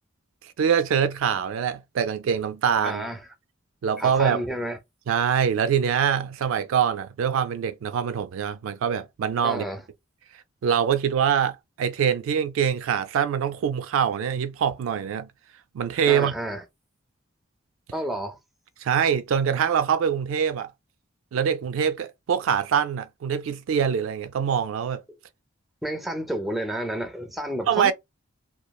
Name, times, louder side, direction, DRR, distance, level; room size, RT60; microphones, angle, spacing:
voice 1, 0.6-3.1 3.8-4.4 5.1-9.7 10.6-15.3 15.7-16.3 18.8-20.7 21.3-25.0 27.7-27.9, right 8 dB, 75° right, 0.3 m, -24 dB
voice 2, 2.8-3.2 4.0-4.8 9.4-9.8 16.1-16.6 17.9-18.4 25.8-27.9, equal, ahead, 0.4 m, -30 dB
3.0 x 2.3 x 2.3 m
head